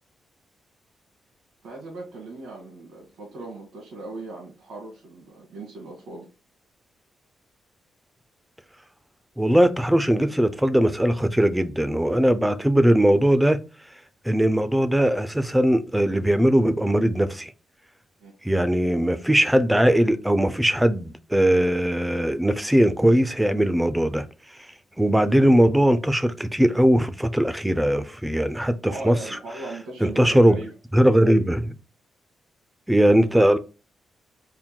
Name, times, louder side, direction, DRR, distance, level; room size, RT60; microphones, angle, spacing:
voice 1, 1.6-6.3 18.2-18.3 28.9-30.7, right 2 dB, 80° right, 1.3 m, -38 dB
voice 2, 9.4-13.6 14.2-17.5 18.4-24.2 25.0-28.8 29.0-29.2 30.0-30.6 30.9-31.7 32.9-33.6, equal, 5° right, 0.3 m, -20 dB
3.6 x 2.2 x 4.3 m
cardioid pair, 145°, 0 cm